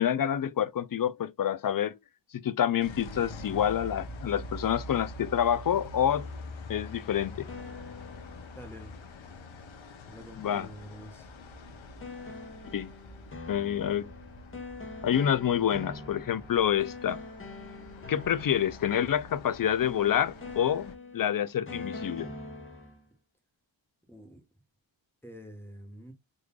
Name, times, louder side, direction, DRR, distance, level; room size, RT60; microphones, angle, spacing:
voice 1, 0.0-2.0 2.4-6.3 6.7-7.5 10.4-10.7 12.7-12.9 13.5-14.1 15.0-17.2 18.1-22.3, left 9 dB, 50° left, 0.4 m, -27 dB
sound 1, 2.8-20.9, left 1 dB, 80° left, 1.0 m, -45 dB
sound 2, 7.3-9.7 12.0-23.1, left 3 dB, 30° left, 1.1 m, -44 dB
voice 2, 8.6-8.9 10.0-11.3 24.1-24.4 25.2-26.1, equal, 5° left, 1.1 m, -47 dB
3.8 x 3.2 x 2.3 m
wide cardioid pair, 140°, 46 cm